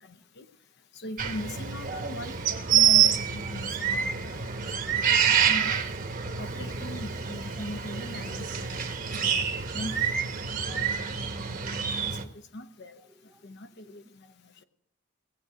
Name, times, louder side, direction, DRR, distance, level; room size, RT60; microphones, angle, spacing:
voice 1, 1.0-2.4 2.7-4.4 5.1-5.8 6.4-9.4 9.7-10.1 10.6-11.0 11.6-11.9 12.5-13.0 13.4-14.3, left 1 dB, 60° left, 0.9 m, -40 dB
sound 1, 1.2-12.2, right 8 dB, 45° right, 1.1 m, -27 dB
voice 2, 4.1-4.7 7.4-7.5 8.5-9.0 13.1-13.4 13.8-14.0, right 1 dB, 10° right, 0.6 m, -59 dB
18.0 x 8.2 x 5.0 m
head